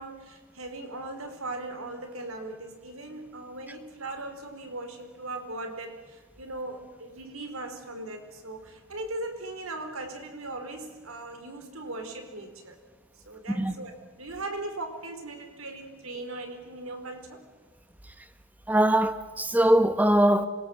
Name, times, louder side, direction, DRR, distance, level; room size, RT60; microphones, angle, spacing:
voice 1, 0.0-12.8 13.3-17.4, right 2 dB, 85° right, 4.5 m, -39 dB
voice 2, 18.7-20.5, right 1 dB, 10° right, 1.3 m, -21 dB
26.0 x 22.0 x 7.9 m
head